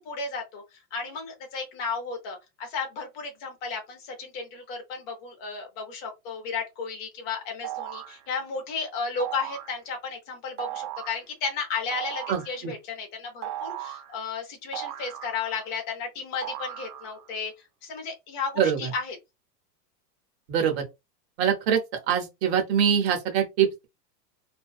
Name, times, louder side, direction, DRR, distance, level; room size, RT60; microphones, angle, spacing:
voice 1, 0.0-17.5 17.8-19.2, left 5 dB, 25° left, 0.7 m, -34 dB
sound 1, 7.6-8.2 9.2-9.7 10.6-11.2 11.9-12.5 13.4-14.1 14.7-15.7 16.4-17.2, right 13 dB, 70° right, 0.8 m, -36 dB
voice 2, 20.5-20.8 21.4-21.8 22.1-23.8, right 8 dB, 40° right, 0.8 m, -23 dB
2.5 x 2.2 x 2.3 m
supercardioid pair, 165°, 49 cm